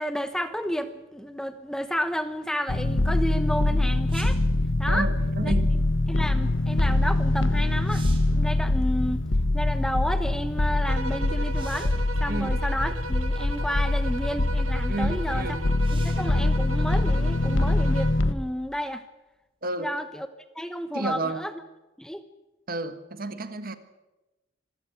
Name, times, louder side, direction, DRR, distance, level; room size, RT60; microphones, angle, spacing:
voice 1, 0.0-4.4 4.8-5.1 5.4-5.5 6.1-9.3 9.5-15.6 15.9-19.0 19.8-20.3 20.5-21.5 22.0-22.2, equal, 5° left, 10 dB, 1.0 m, -31 dB
sound 1, 2.7-18.3, left 2 dB, 70° left, 1.1 m, -24 dB
sound 2, 4.1-4.5 7.2-7.3 7.7-8.4 11.5-12.1 13.1-13.2 15.8-16.4 19.9-20.0, right 5 dB, 25° right, 3.4 m, -46 dB
voice 2, 4.9-5.7 12.3-12.6 14.9-15.6 19.6-19.9 20.9-21.4 22.7-23.8, right 2 dB, 45° right, 11 dB, 1.6 m, -31 dB
sound 3, 10.9-18.3, right 2 dB, 85° right, 1.6 m, -38 dB
25.5 x 15.0 x 9.3 m, 1.0 s
head